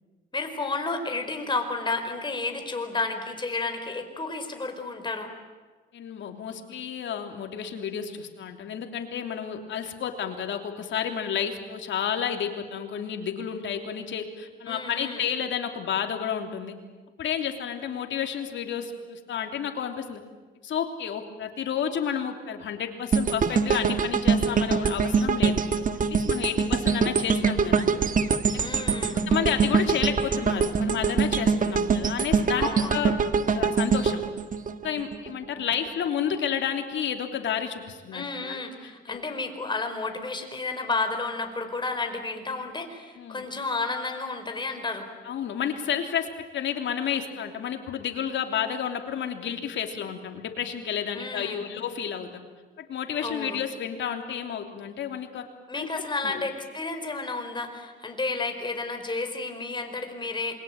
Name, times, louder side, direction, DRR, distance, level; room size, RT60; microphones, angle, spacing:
voice 1, 0.3-5.3 14.7-15.2 28.6-29.3 32.6-32.9 38.1-45.1 51.1-51.7 53.2-53.6 55.7-60.5, left 3 dB, 25° left, 5 dB, 4.7 m, -31 dB
voice 2, 5.9-16.7 17.2-20.2 20.6-25.8 26.1-27.9 28.8-28.9 29.3-34.2 34.8-38.7 39.1-39.2 43.2-43.4 45.2-52.3 52.8-55.4 55.7-55.9 56.2-56.4, left 8 dB, 70° left, 5 dB, 3.2 m, -31 dB
sound 1, 23.1-35.3 35.7-35.9, right 5 dB, 40° right, 1.6 m, -24 dB
27.5 x 22.5 x 8.9 m, 1.3 s
cardioid pair, 90°, 20 cm